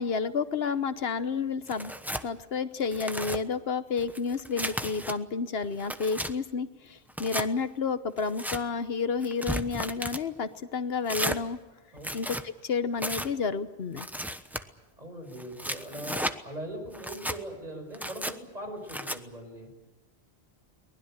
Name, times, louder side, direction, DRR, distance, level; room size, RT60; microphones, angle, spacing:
voice 1, 0.0-1.9 2.2-11.6 12.1-14.1, left 5 dB, 70° left, 12 dB, 1.2 m, -30 dB
Tearing, 1.7-2.3 2.8-3.4 4.0-5.1 5.6-6.3 7.1-7.5 8.2-8.6 9.2-10.2 11.1-11.4 12.0-12.4 13.0-13.3 14.0-14.6 15.3-16.4 16.9-17.4 17.9-18.3 18.9-19.2, equal, ahead, 1.0 m, -34 dB
voice 2, 15.0-19.7, right 1 dB, 40° right, 4 dB, 5.8 m, -40 dB
23.5 x 20.0 x 8.9 m, 1.1 s
omnidirectional pair, 1.1 m